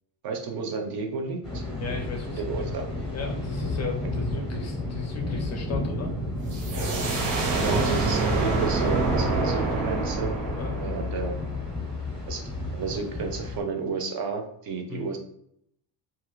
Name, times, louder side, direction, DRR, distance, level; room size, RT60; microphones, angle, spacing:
voice 1, 0.2-1.6 2.3-2.8 7.5-10.3 10.8-11.3 12.3-15.2, right 4 dB, 50° right, 4 dB, 0.6 m, -32 dB
Thunder, 1.4-13.6, left 2 dB, ahead, 0.7 m, -32 dB
voice 2, 1.7-6.1 10.6-10.7 14.9-15.1, left 5 dB, 35° left, 2 dB, 0.4 m, -36 dB
sound 1, 6.5-12.0, right 3 dB, 85° right, 1.0 m, -27 dB
2.8 x 2.4 x 3.0 m, 0.72 s
cardioid pair, 160°, 46 cm